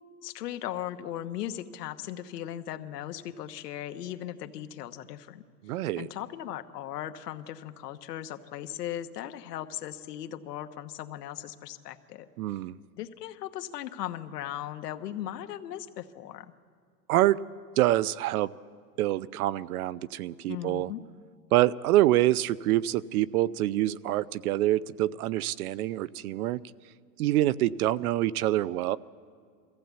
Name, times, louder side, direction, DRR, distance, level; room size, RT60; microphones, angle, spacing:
voice 1, 0.2-5.4 6.0-12.2 13.0-16.5 20.5-21.0, left 12 dB, 75° left, 8 dB, 1.2 m, -38 dB
voice 2, 5.6-6.1 12.4-12.8 17.1-17.4 17.8-18.5 19.0-20.9 21.5-26.6 27.2-29.0, right 15 dB, 65° right, 17 dB, 0.6 m, -26 dB
22.5 x 15.5 x 8.1 m, 2.1 s
supercardioid pair, 145°, 48 cm